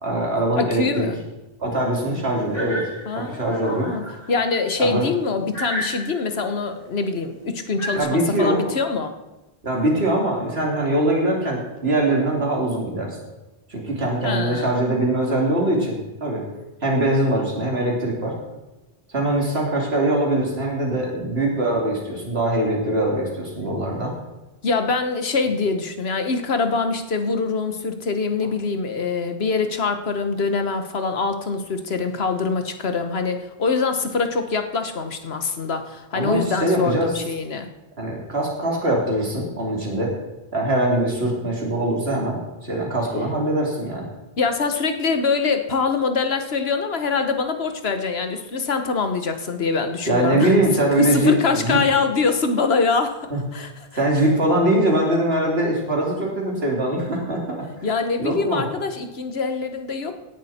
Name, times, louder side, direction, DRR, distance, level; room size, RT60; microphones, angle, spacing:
voice 1, 0.0-1.1 1.6-2.8 3.1-3.9 4.8-5.1 7.9-8.7 9.6-13.2 13.7-16.4 16.8-18.3 19.1-24.1 36.1-37.1 38.0-40.1 40.5-44.1 50.1-51.8 53.3-53.4 53.9-57.6 58.2-58.6, right 1 dB, 80° right, -1 dB, 3.4 m, -22 dB
voice 2, 0.5-1.2 3.1-9.1 14.2-14.7 24.6-37.7 44.4-50.5 51.0-54.0 57.8-60.1, left 4 dB, 80° left, 7 dB, 1.4 m, -24 dB
sound 1, 2.5-4.6 5.1-5.2 5.5-6.5 7.8-8.0, equal, 60° left, 4.0 m, -32 dB
16.5 x 11.0 x 4.3 m, 1.0 s
omnidirectional pair, 1.0 m